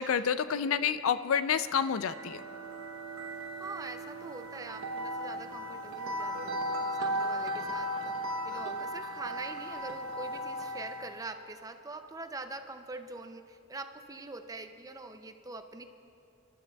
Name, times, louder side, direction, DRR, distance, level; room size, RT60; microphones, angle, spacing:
voice 1, 0.0-2.4, left 7 dB, 80° left, 13 dB, 0.4 m, -29 dB
sound 1, 1.8-11.2, equal, 80° right, 0.9 m, -36 dB
voice 2, 3.6-15.8, right 3 dB, 15° right, 7 dB, 0.4 m, -44 dB
26.5 x 12.0 x 2.3 m, 2.7 s
head